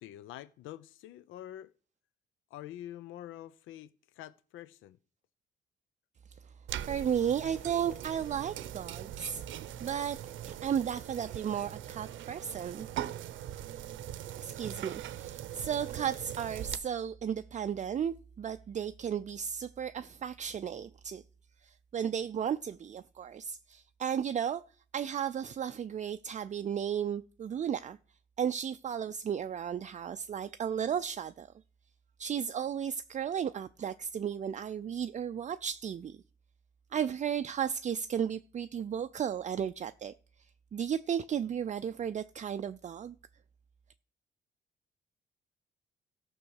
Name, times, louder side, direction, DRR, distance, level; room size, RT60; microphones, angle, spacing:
voice 1, 0.0-1.7 2.5-5.0, left 12 dB, 85° left, 0.5 m, -46 dB
sound 1, 6.7-16.8, right 11 dB, 75° right, 0.7 m, -41 dB
voice 2, 6.9-10.2 10.4-12.9 14.4-21.2 21.6-24.6 24.9-28.0 28.4-31.5 32.2-36.2 36.9-40.1 40.7-43.1, right 8 dB, 35° right, 0.4 m, -34 dB
14.0 x 6.1 x 6.4 m
cardioid pair, 90°, 20 cm